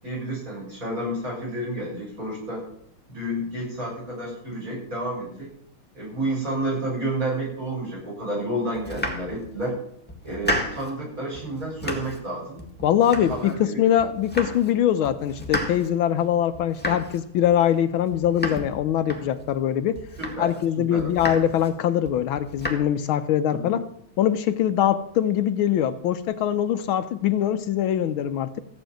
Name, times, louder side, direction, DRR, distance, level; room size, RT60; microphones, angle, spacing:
voice 1, 0.0-2.6 3.1-5.5 5.9-9.7 10.2-12.6 13.2-13.8 20.2-21.1 23.5-23.7, right 1 dB, 40° right, -4 dB, 7.4 m, -30 dB
Domestic sounds home sounds, 8.7-9.7 10.1-11.0 11.3-12.3 12.6-13.7 14.0-14.8 15.0-19.6 19.9-20.6 21.0-21.7 22.1-22.7, equal, 5° left, 1.7 m, -33 dB
voice 2, 12.8-20.0 20.4-23.8 24.2-28.6, left 10 dB, 75° left, 10 dB, 1.5 m, -23 dB
15.5 x 6.1 x 9.1 m, 0.69 s
omnidirectional pair, 2.3 m